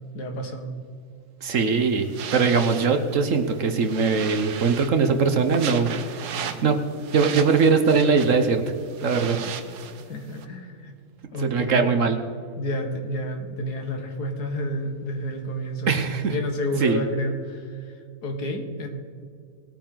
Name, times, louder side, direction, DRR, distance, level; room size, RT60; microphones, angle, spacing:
voice 1, 0.1-0.7 10.1-10.9 11.3-12.0 12.6-17.9 18.2-18.9, equal, 80° left, 3 dB, 2.1 m, -30 dB
voice 2, 1.4-6.8 7.1-8.6 9.0-9.4 11.4-12.2 15.9-16.4 16.8-17.0, right 5 dB, 55° right, 7 dB, 1.2 m, -21 dB
sound 1, 1.6-10.4, right 8 dB, 90° right, 1.4 m, -37 dB
19.5 x 9.0 x 3.9 m, 2.2 s
omnidirectional pair, 1.7 m